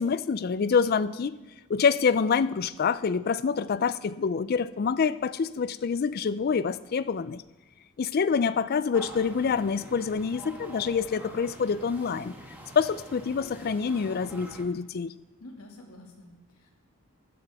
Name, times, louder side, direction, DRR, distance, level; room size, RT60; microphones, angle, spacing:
voice 1, 0.0-1.4 1.7-7.4 8.0-12.3 12.8-15.1, left 6 dB, 45° left, 16 dB, 0.3 m, -26 dB
sound 1, 8.9-14.6, equal, 10° right, 1.4 m, -45 dB
voice 2, 15.4-16.7, left 1 dB, 90° left, 1 dB, 2.2 m, -48 dB
14.5 x 12.0 x 3.5 m, 1.0 s
head